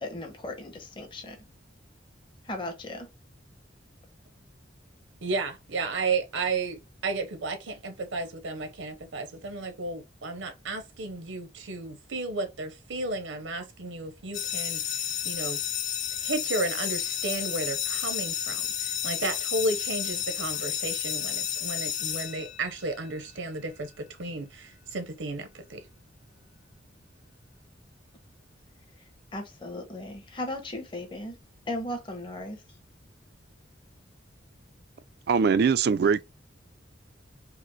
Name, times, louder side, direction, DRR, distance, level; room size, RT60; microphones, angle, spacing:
voice 1, 0.0-1.4 2.5-3.1 29.3-31.4 31.7-32.6, left 1 dB, 25° left, 0.9 m, -36 dB
voice 2, 5.2-15.6 16.2-25.9, right 3 dB, 85° right, 0.7 m, -33 dB
sound 1, 14.3-23.0, left 9 dB, 45° left, 0.5 m, -31 dB
voice 3, 35.3-36.2, right 5 dB, 55° right, 0.3 m, -22 dB
4.9 x 2.0 x 3.0 m
head